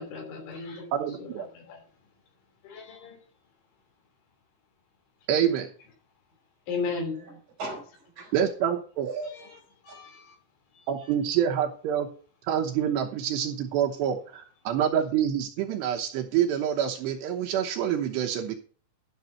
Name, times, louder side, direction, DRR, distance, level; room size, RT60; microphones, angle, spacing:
voice 1, 0.0-0.9 1.2-1.8 2.6-3.2 6.7-7.2 8.2-8.3 9.4-9.6 9.8-10.4 10.8-10.9, left 4 dB, 65° left, 5.3 m, -36 dB
voice 2, 0.9-1.5 5.3-5.7 8.3-9.1 10.9-12.1 12.4-18.5, right 9 dB, 80° right, 2.6 m, -27 dB
voice 3, 6.9-8.3 9.0-9.5 9.9-10.0, right 3 dB, 40° right, 4.0 m, -39 dB
12.0 x 6.1 x 5.6 m
omnidirectional pair, 6.0 m